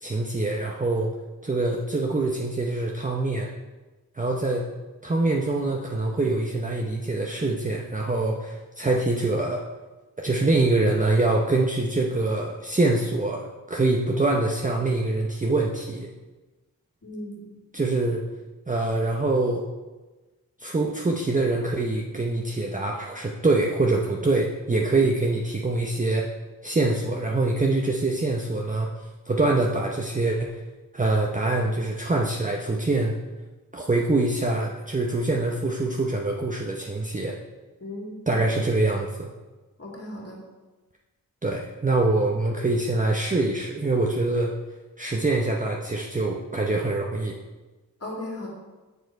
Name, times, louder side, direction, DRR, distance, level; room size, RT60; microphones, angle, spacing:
voice 1, 0.0-1.1 1.4-3.5 4.2-4.6 5.0-9.6 10.2-16.1 17.7-18.2 18.7-19.6 20.6-26.3 26.6-28.9 29.3-30.6 30.9-33.2 33.7-37.4 38.3-39.3 41.4-44.5 45.0-47.4, right 2 dB, 20° right, -1 dB, 0.8 m, -24 dB
voice 2, 17.0-17.5 37.8-38.5 39.8-40.4 48.0-48.5, left 1 dB, 40° left, -2 dB, 2.6 m, -36 dB
7.1 x 6.7 x 4.7 m, 1.2 s
wide cardioid pair, 80°, 36 cm